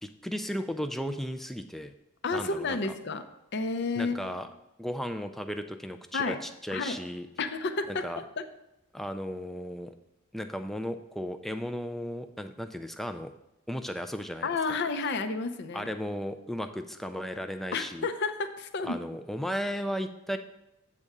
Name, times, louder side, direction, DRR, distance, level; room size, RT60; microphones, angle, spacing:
voice 1, 0.0-1.9 2.3-2.9 4.0-4.5 4.8-7.3 7.9-8.2 8.9-9.9 10.3-13.3 13.7-14.6 15.7-18.1 18.8-20.4, equal, ahead, 7 dB, 0.3 m, -35 dB
voice 2, 2.2-3.2 3.5-4.2 6.1-6.4 6.7-7.0 7.4-8.1 8.4-8.5 14.4-15.9 17.7-18.9, left 3 dB, 50° left, 8 dB, 0.6 m, -30 dB
8.4 x 3.6 x 6.6 m, 0.88 s
head